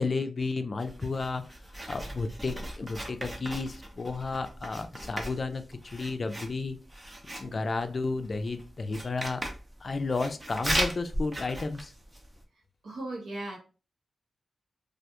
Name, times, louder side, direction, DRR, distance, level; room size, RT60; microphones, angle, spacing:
voice 1, 0.0-1.4 1.9-6.8 7.4-9.4 9.8-11.9, left 3 dB, 45° left, 0.3 m, -32 dB
Writing, 0.8-12.4, right 1 dB, 25° right, 0.6 m, -37 dB
voice 2, 7.4-7.8 9.0-9.1 12.8-13.6, right 2 dB, 80° right, 0.8 m, -38 dB
2.3 x 2.2 x 2.9 m
cardioid pair, 80°, 0 cm